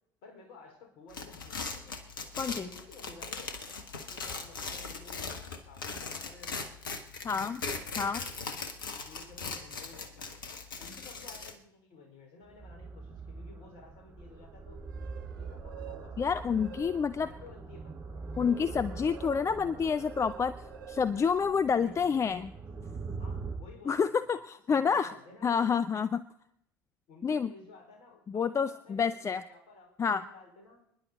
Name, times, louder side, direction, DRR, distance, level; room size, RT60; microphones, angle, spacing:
voice 1, 0.2-2.1 2.5-3.6 4.1-6.8 7.2-7.5 9.1-10.3 10.8-14.8 15.4-16.2 17.2-18.0 21.8-22.3 23.2-24.3 24.7-25.7 27.1-30.9, left 3 dB, 55° left, 2 dB, 5.0 m, -53 dB
sound 1, 1.1-11.5, left 4 dB, 75° left, 1.4 m, -40 dB
voice 2, 2.4-2.7 7.2-8.2 16.2-17.3 18.4-20.5 20.9-22.5 23.9-25.1 25.4-26.2 27.2-27.5 28.3-29.4 30.0-30.2, left 6 dB, 25° left, 13 dB, 0.6 m, -28 dB
sound 2, 12.4-23.6, right 4 dB, 30° right, 7.1 m, -43 dB
sound 3, 14.7-17.4 17.8-22.1, right 9 dB, 75° right, 0.9 m, -50 dB
29.5 x 10.5 x 4.1 m, 0.77 s
figure-of-eight pair, 65°, 11 cm